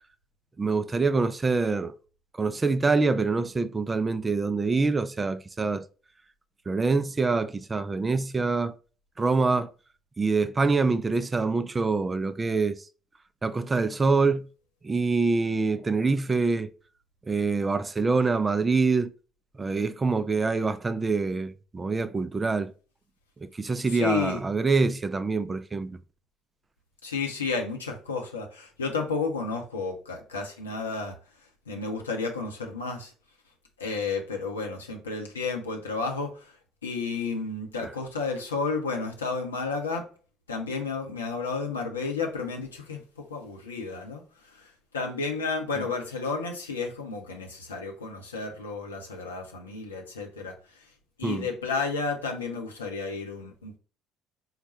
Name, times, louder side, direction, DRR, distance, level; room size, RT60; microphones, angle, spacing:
voice 1, 0.6-1.9 2.4-5.8 6.7-8.7 9.2-9.7 10.2-12.8 13.4-14.4 14.8-16.7 17.3-19.1 19.6-22.7 23.4-26.0 51.2-51.5, right 4 dB, 25° right, 0.3 m, -25 dB
voice 2, 23.8-24.4 27.0-33.1 33.8-40.1 40.5-50.9 51.2-53.8, left 4 dB, 80° left, 0.7 m, -32 dB
4.0 x 2.2 x 4.1 m
figure-of-eight pair, 50°, 0 cm